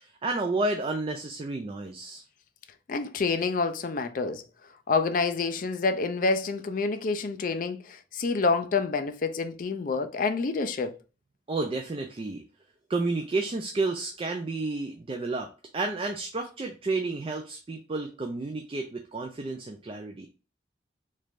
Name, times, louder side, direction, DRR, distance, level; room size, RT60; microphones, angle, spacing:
voice 1, 0.0-2.2 11.5-12.4 12.9-20.3, right 3 dB, 30° right, 0.3 m, -31 dB
voice 2, 2.9-4.4 4.9-11.0, left 4 dB, 50° left, 0.4 m, -28 dB
3.2 x 3.2 x 2.5 m
head